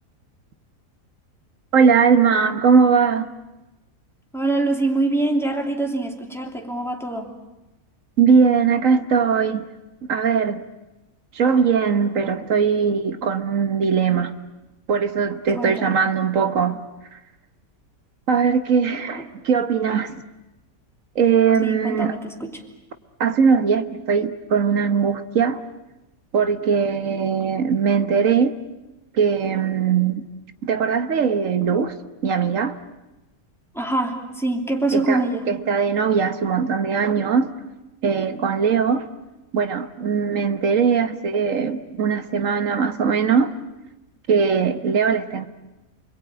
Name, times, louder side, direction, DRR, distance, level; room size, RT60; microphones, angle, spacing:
voice 1, 1.7-3.3 8.2-9.7 10.1-10.6 11.3-14.3 14.9-16.8 18.3-20.2 21.1-22.1 23.2-25.6 26.3-28.5 29.1-30.2 30.6-31.9 32.2-32.8 34.9-35.2 35.5-37.5 38.0-39.1 39.5-43.5 44.3-45.5, right 6 dB, 65° right, 10 dB, 1.5 m, -20 dB
voice 2, 4.3-7.4 15.5-16.0 21.6-22.6 33.7-35.5, right 2 dB, ahead, 1 dB, 2.9 m, -24 dB
29.0 x 22.0 x 9.0 m, 1.0 s
omnidirectional pair, 1.5 m